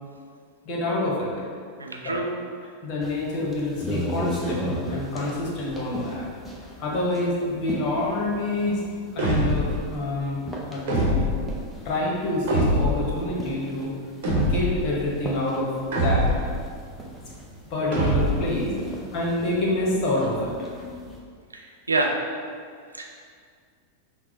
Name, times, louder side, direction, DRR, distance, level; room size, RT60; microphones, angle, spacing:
voice 1, 0.7-1.3 2.0-2.2 2.8-6.2 6.8-8.8 9.1-10.4 10.7-11.3 11.8-13.9 14.3-15.7 16.0-16.4 17.7-18.7 19.1-20.5, left 2 dB, 40° left, -3 dB, 1.0 m, -27 dB
voice 2, 1.8-2.3 21.5-22.1 22.9-23.1, right 2 dB, 75° right, 1 dB, 0.5 m, -27 dB
sound 1, 3.0-21.2, equal, ahead, 0.6 m, -37 dB
sound 2, 9.2-9.8 10.9-11.6 12.5-13.1 14.2-14.9 15.9-16.6 17.9-18.6, equal, 55° right, 1.0 m, -23 dB
5.9 x 2.0 x 3.7 m, 2.1 s
figure-of-eight pair, 90°, 0 cm